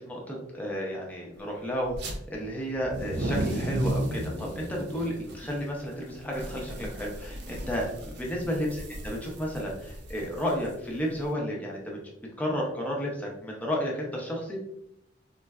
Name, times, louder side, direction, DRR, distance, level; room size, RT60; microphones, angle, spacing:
voice 1, 0.1-12.0 12.4-14.6, equal, 10° left, -2 dB, 0.6 m, -32 dB
sound 1, 1.9-2.1 2.7-11.2, right 1 dB, 60° right, 0.5 m, -35 dB
3.7 x 2.2 x 2.2 m, 0.78 s
head